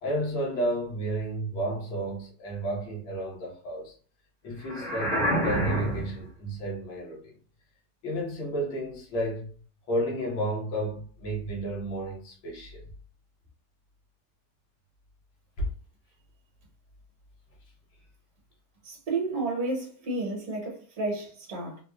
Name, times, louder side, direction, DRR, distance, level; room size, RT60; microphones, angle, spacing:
voice 1, 0.0-4.0 4.4-7.3 8.0-9.5 9.9-12.8 15.6-15.7, right 1 dB, 75° left, 2.0 m, -32 dB
sound 1, 4.6-6.2, equal, 45° left, 1.3 m, -27 dB
voice 2, 18.8-21.8, right 2 dB, 50° right, 1.4 m, -31 dB
4.7 x 2.3 x 2.3 m
omnidirectional pair, 2.3 m